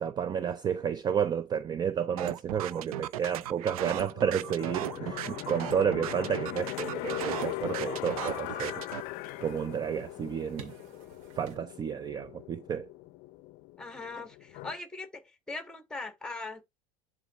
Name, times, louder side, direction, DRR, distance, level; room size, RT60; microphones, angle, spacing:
voice 1, 0.0-8.8 9.4-10.7 11.4-12.9, right 8 dB, 25° right, 0.5 m, -31 dB
sound 1, 2.2-9.0, right 13 dB, 90° right, 0.5 m, -37 dB
sound 2, 4.1-14.8, left 19 dB, 50° left, 0.6 m, -40 dB
sound 3, 6.6-11.6, right 7 dB, 70° right, 2.0 m, -55 dB
voice 2, 13.8-16.6, left 3 dB, 5° left, 1.4 m, -40 dB
11.0 x 3.9 x 3.0 m
supercardioid pair, 120°, 18 cm